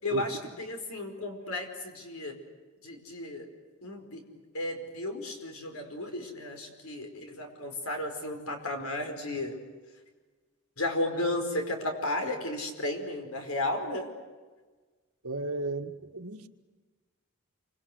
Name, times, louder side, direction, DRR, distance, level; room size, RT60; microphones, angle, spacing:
voice 1, 0.0-2.4 2.8-3.5 3.8-4.2 4.5-9.6 10.8-14.1, left 1 dB, 80° left, 5.0 m, -34 dB
voice 2, 15.2-16.5, right 2 dB, 90° right, 1.8 m, -33 dB
27.5 x 25.5 x 8.1 m
head